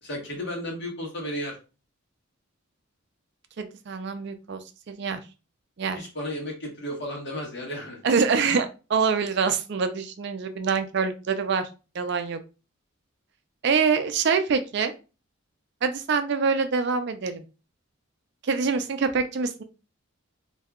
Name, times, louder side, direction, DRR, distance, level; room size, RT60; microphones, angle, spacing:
voice 1, 0.0-1.6 5.9-8.0, equal, 55° left, -1 dB, 1.2 m, -33 dB
voice 2, 3.6-4.6 4.9-5.2 5.8-6.0 8.0-11.7 11.9-12.4 13.6-14.9 15.8-17.4 18.4-19.6, right 5 dB, 55° right, 8 dB, 0.4 m, -25 dB
2.7 x 2.2 x 3.6 m, 0.32 s
head